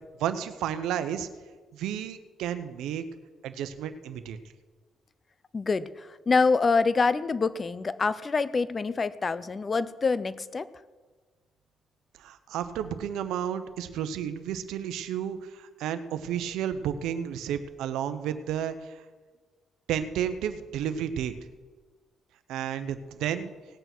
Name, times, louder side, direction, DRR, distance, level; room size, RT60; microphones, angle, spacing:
voice 1, 0.2-1.3 1.7-3.0 3.4-4.4 12.2-19.0 19.9-21.3 22.5-23.5, right 9 dB, 90° right, 10 dB, 0.8 m, -32 dB
voice 2, 5.5-10.7, left 4 dB, 35° left, 17 dB, 0.6 m, -26 dB
18.0 x 6.9 x 6.0 m, 1.4 s
cardioid pair, 90°, 0 cm